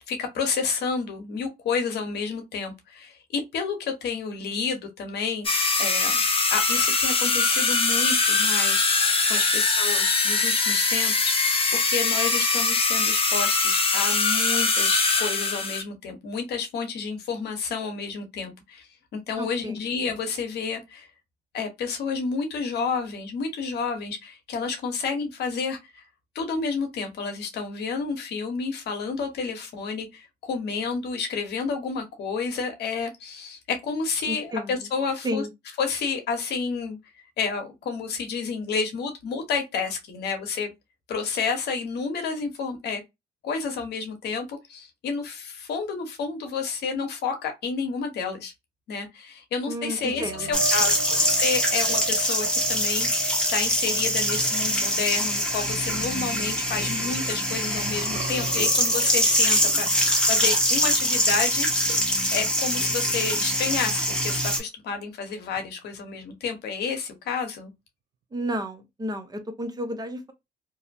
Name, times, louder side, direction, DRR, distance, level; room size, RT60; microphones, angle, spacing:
voice 1, 0.1-5.5 5.8-6.2 6.5-11.3 11.7-21.1 21.5-26.0 26.3-35.4 35.8-37.0 37.4-40.7 41.1-43.0 43.4-48.5 48.9-59.9 60.2-61.7 62.3-67.7, left 5 dB, 70° left, 0.9 m, -30 dB
sound 1, 5.4-15.8, left 3 dB, 30° left, 0.8 m, -22 dB
voice 2, 19.4-19.8 34.3-34.7 35.2-35.5 49.7-50.6 68.3-70.3, equal, 20° right, 0.7 m, -32 dB
sound 2, 50.0-57.4 57.7-61.6 62.0-62.2 65.6-65.7, right 6 dB, 70° right, 0.5 m, -39 dB
sound 3, 50.5-64.6, equal, 5° left, 1.0 m, -24 dB
2.6 x 2.1 x 2.6 m
cardioid pair, 80°, 17 cm